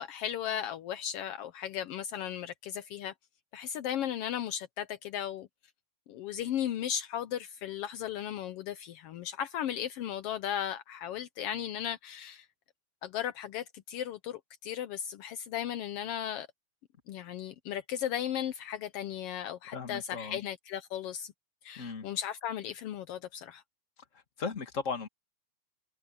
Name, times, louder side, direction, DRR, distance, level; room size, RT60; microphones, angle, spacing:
voice 1, 0.0-3.1 3.5-5.5 6.1-12.5 13.0-16.5 17.1-21.3 21.6-23.6, left 10 dB, 80° left, 1.3 m, -36 dB
voice 2, 19.7-20.4 21.8-22.1 24.1-25.1, left 5 dB, 30° left, 1.9 m, -37 dB
omnidirectional pair, 3.6 m